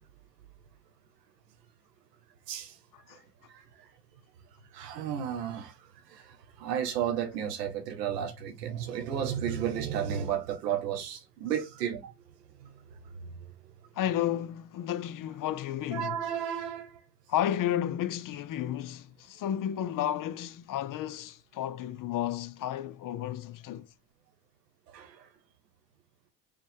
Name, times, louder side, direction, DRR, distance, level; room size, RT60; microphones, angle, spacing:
voice 1, 2.5-2.8 3.1-3.2 3.5-3.9 4.7-12.1 12.6-13.4 15.9-17.0 24.9-25.3, right 9 dB, 85° right, 1.0 m, -33 dB
voice 2, 13.9-16.2 17.3-23.9, left 11 dB, 45° left, 0.6 m, -32 dB
5.0 x 2.3 x 3.4 m
hypercardioid pair, 55°, 47 cm